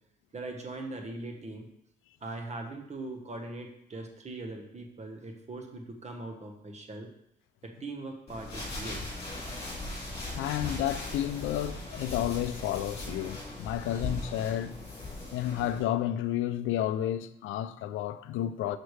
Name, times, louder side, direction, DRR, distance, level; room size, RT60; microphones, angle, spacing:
voice 1, 0.3-1.7 2.2-7.1 7.6-9.1, right 2 dB, 35° right, 1.2 m, -40 dB
sound 1, 8.3-15.8, left 2 dB, 30° left, 2.6 m, -39 dB
voice 2, 10.3-14.7 15.3-18.8, left 12 dB, 85° left, 0.4 m, -31 dB
6.5 x 6.1 x 3.2 m
cardioid pair, 90°, 20 cm